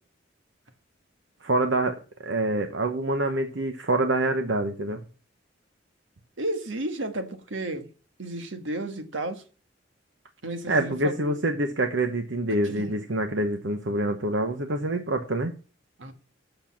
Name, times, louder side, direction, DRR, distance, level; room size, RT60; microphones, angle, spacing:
voice 1, 1.4-5.0 10.7-15.5, right 2 dB, 70° right, 1.0 m, -26 dB
voice 2, 6.4-7.9 8.2-9.4 10.4-11.3 12.5-13.0 16.0-16.1, right 2 dB, 85° right, 1.6 m, -33 dB
8.0 x 6.8 x 7.3 m
head